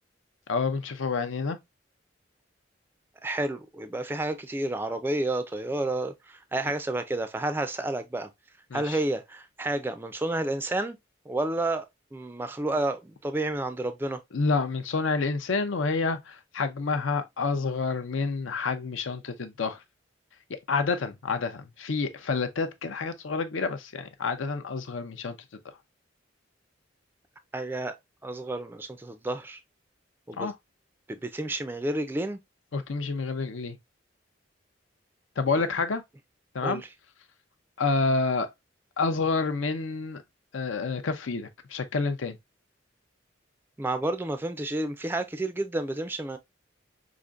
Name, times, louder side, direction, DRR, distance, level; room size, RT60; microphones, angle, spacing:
voice 1, 0.5-1.6 8.7-9.0 14.3-19.8 20.7-25.4 30.4-30.5 32.7-33.8 35.4-36.0 36.5-36.8 37.8-38.5 39.0-40.2 40.5-42.4, left 4 dB, 85° left, 0.6 m, -28 dB
voice 2, 3.2-8.3 8.7-11.0 11.3-14.2 27.5-28.0 28.2-29.6 30.3-30.5 31.1-32.4 35.5-35.7 36.6-36.9 43.8-46.4, right 2 dB, 10° right, 0.3 m, -30 dB
4.9 x 2.5 x 2.4 m
head